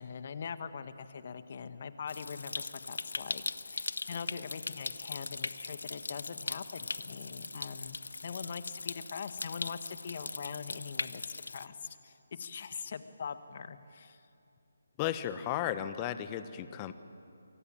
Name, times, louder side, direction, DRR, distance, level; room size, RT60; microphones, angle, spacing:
voice 1, 0.0-11.2 11.5-14.2, left 6 dB, 45° left, 11 dB, 1.6 m, -42 dB
Stream, 2.1-11.7, left 3 dB, 70° left, 0.8 m, -40 dB
voice 2, 15.0-16.9, left 11 dB, 20° left, 11 dB, 1.3 m, -34 dB
28.5 x 23.5 x 8.9 m, 2.6 s
figure-of-eight pair, 155°, 0 cm